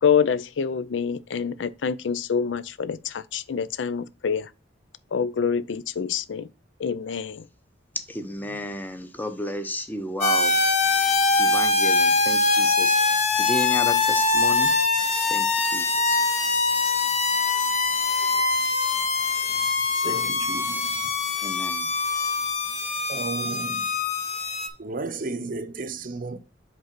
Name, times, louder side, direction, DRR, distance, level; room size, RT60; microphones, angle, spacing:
voice 1, 0.0-4.5 5.1-6.5 6.8-7.4, left 6 dB, 75° left, 0.5 m, -26 dB
voice 2, 8.1-10.6 11.4-14.7 15.3-15.5 15.7-16.2 21.4-21.9, left 1 dB, 10° left, 0.8 m, -33 dB
sound 1, 10.2-24.7, left 3 dB, 35° left, 0.9 m, -23 dB
voice 3, 20.0-21.1 23.1-23.8 24.8-26.4, right 3 dB, 50° right, 0.7 m, -33 dB
5.2 x 3.9 x 5.9 m
head